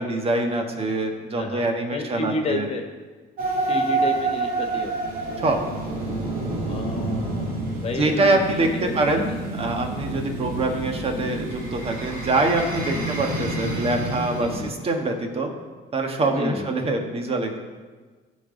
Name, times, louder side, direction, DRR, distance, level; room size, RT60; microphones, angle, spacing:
voice 1, 0.0-2.6 5.4-5.6 7.9-9.3 9.5-15.5 15.9-17.6, right 2 dB, 35° right, 3 dB, 1.5 m, -24 dB
voice 2, 1.4-2.9 3.6-4.9 6.7-9.4 11.1-11.5 12.9-13.2 14.4-14.7 16.4-16.7, left 3 dB, 35° left, 3 dB, 1.4 m, -32 dB
sound 1, 3.4-14.7, right 2 dB, 55° right, 2.3 m, -28 dB
15.5 x 5.5 x 3.9 m, 1.4 s
cardioid pair, 110°, 17 cm